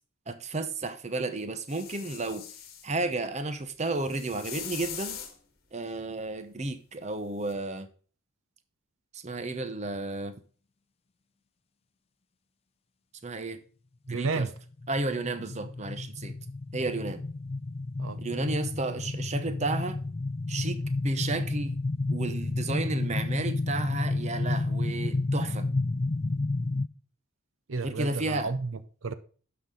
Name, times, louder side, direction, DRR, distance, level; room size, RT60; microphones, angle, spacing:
voice 1, 0.3-2.5 2.8-5.2 5.7-7.9 9.1-10.4 13.2-13.6 14.1-14.5 14.9-16.3 16.7-17.3 18.2-20.0 20.5-21.8 22.1-25.7 27.8-28.5, right 2 dB, 30° right, 0.7 m, -32 dB
sound 1, 1.7-2.9 4.0-5.3 7.5-7.6, left 9 dB, 45° left, 1.7 m, -41 dB
voice 2, 14.1-14.5 18.0-18.2 27.7-29.1, right 4 dB, 65° right, 0.6 m, -32 dB
sound 2, 14.6-26.9, left 2 dB, 30° left, 0.4 m, -31 dB
11.5 x 5.9 x 3.7 m
head